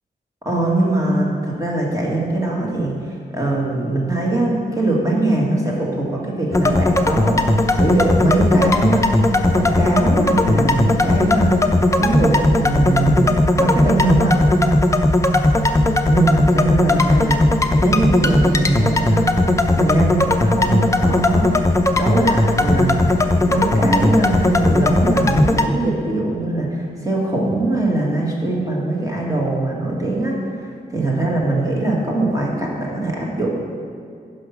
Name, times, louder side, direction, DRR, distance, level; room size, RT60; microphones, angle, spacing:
voice 1, 0.5-9.1 9.5-11.7 12.0-14.3 16.0-17.4 17.8-21.5 22.0-23.1 23.5-33.6, right 2 dB, 20° right, -3 dB, 1.9 m, -21 dB
sound 1, 6.5-25.7, left 1 dB, 15° left, 0.6 m, -17 dB
9.9 x 5.7 x 5.8 m, 2.3 s
wide cardioid pair, 100°, 18 cm